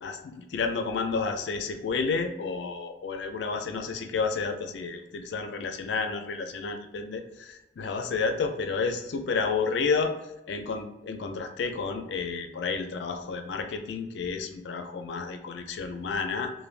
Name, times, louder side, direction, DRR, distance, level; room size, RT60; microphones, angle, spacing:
voice 1, 0.0-10.1 10.5-16.5, left 4 dB, 75° left, 7 dB, 0.4 m, -31 dB
3.2 x 2.2 x 2.4 m, 0.95 s
head